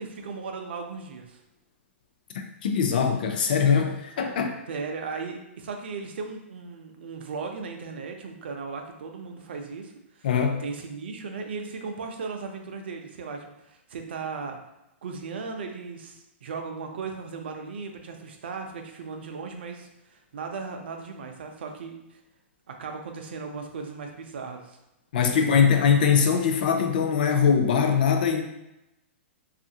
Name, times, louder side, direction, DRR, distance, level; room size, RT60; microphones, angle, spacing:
voice 1, 0.0-1.4 4.7-10.3 10.6-14.6 15.0-22.2 22.7-24.8 25.5-25.7, right 4 dB, 60° right, 3 dB, 0.5 m, -37 dB
voice 2, 2.3-4.6 10.2-10.6 25.1-28.4, left 6 dB, 45° left, 5 dB, 0.4 m, -22 dB
3.0 x 2.4 x 2.7 m, 0.89 s
hypercardioid pair, 175°, 7 cm